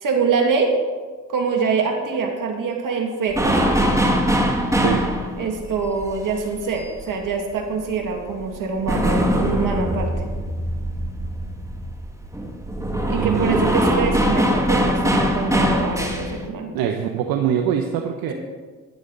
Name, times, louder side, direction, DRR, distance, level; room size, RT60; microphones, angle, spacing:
voice 1, 0.0-0.8 1.3-3.6 5.4-10.1 13.1-16.9 18.3-18.4, right 5 dB, 65° right, 3 dB, 2.3 m, -24 dB
sound 1, 3.3-7.6 7.9-16.5, equal, 10° right, 1.8 m, -22 dB
voice 2, 13.1-13.6 16.7-18.3, right 9 dB, 80° right, 5 dB, 0.9 m, -23 dB
13.0 x 9.7 x 4.0 m, 1.4 s
supercardioid pair, 60°, 35 cm